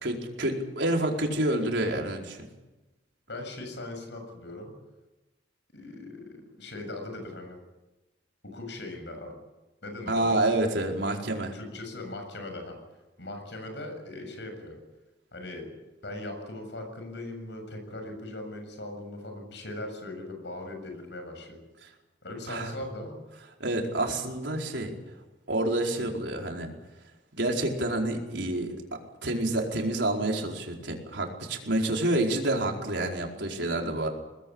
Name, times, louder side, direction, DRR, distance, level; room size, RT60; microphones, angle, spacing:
voice 1, 0.0-2.4 10.1-11.5 21.8-21.9 22.5-22.7 23.6-24.9 25.5-26.7 27.3-34.1, right 1 dB, 70° right, 1 dB, 4.7 m, -28 dB
voice 2, 3.3-4.7 5.7-7.6 8.5-9.4 9.8-10.4 11.5-12.8 13.2-14.8 15.3-15.7 16.0-21.7 22.2-23.2 26.0-26.1, left 2 dB, 70° left, 4 dB, 7.2 m, -39 dB
23.5 x 20.0 x 8.9 m, 1.1 s
head